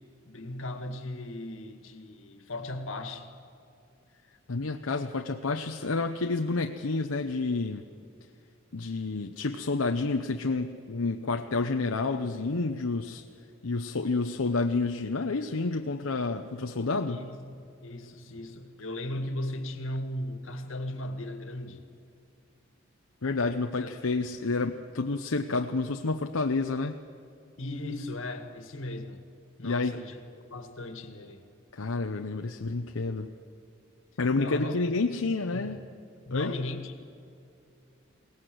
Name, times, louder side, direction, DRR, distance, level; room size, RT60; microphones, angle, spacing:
voice 1, 0.3-3.3 17.1-21.8 23.8-24.1 27.6-29.2 29.6-30.2 30.5-31.5 34.3-34.8 35.2-35.8 36.3-37.0, left 1 dB, 75° left, 1.9 m, -37 dB
voice 2, 4.5-7.9 8.7-13.2 13.6-17.3 23.2-27.0 29.6-29.9 31.7-33.3 34.2-35.8 36.3-36.6, left 3 dB, 90° left, 0.8 m, -29 dB
22.5 x 18.5 x 7.8 m
head